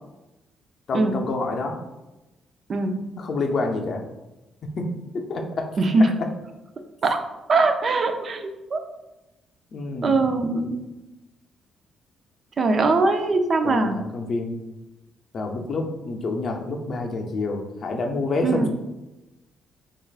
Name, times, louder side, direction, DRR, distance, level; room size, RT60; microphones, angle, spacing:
voice 1, 0.9-1.8 3.2-4.0 4.8-5.7 9.7-10.4 13.6-14.6 15.3-18.7, left 3 dB, 55° left, 3 dB, 0.5 m, -28 dB
voice 2, 2.7-3.0 5.8-6.2 7.0-7.2 7.5-8.8 10.0-10.9 12.6-14.0 18.4-18.7, right 3 dB, 45° right, 7 dB, 0.4 m, -21 dB
4.5 x 2.4 x 2.4 m, 1.0 s
cardioid pair, 90°, 0 cm